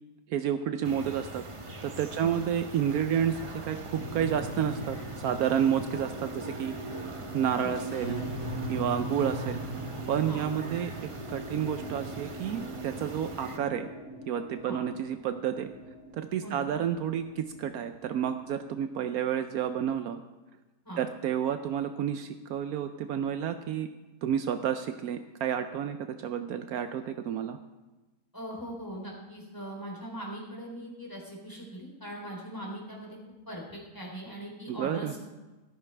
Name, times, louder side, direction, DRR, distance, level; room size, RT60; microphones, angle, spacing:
voice 1, 0.3-1.4 1.8-6.7 7.3-8.3 8.7-9.6 10.1-13.9 14.3-15.7 16.2-20.2 21.0-23.9 24.2-27.6 34.7-35.1, right 9 dB, 75° right, 8 dB, 1.1 m, -30 dB
sound 1, 0.8-13.6, right 2 dB, 30° right, 0.7 m, -43 dB
sound 2, 3.9-18.6, right 1 dB, 65° left, 4.6 m, -40 dB
voice 2, 28.3-33.2 33.5-35.2, right 1 dB, 10° left, -2 dB, 3.4 m, -40 dB
14.0 x 13.0 x 3.3 m, 1.1 s
omnidirectional pair, 1.6 m